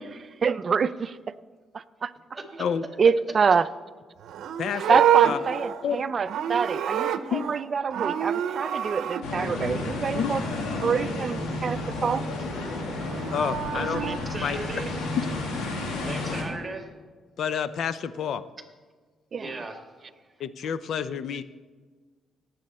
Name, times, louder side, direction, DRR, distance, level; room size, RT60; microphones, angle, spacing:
voice 1, 0.1-1.2 1.7-2.1 3.0-3.7 4.9-10.4 10.8-12.2 19.3-19.5, right 6 dB, 45° right, 15 dB, 0.5 m, -26 dB
voice 2, 2.3-2.6 3.1-3.2 4.7-4.9 5.2-5.5 13.7-15.0 16.0-16.9 19.3-19.8 20.1-20.3, right 2 dB, 25° right, 4 dB, 1.7 m, -37 dB
Livestock farm animals working animals, 4.2-7.6 7.9-9.2 13.0-14.2, right 10 dB, 75° right, 0.7 m, -26 dB
voice 3, 4.6-5.4 5.8-6.0 7.3-7.5 10.1-10.3 13.3-14.0 14.4-14.6 17.4-18.4 20.4-21.4, left 7 dB, 65° left, 14 dB, 0.6 m, -29 dB
sound 1, 9.2-16.4, left 2 dB, 90° left, 2.3 m, -31 dB
18.5 x 7.7 x 4.3 m, 1.5 s
cardioid pair, 90°, 0 cm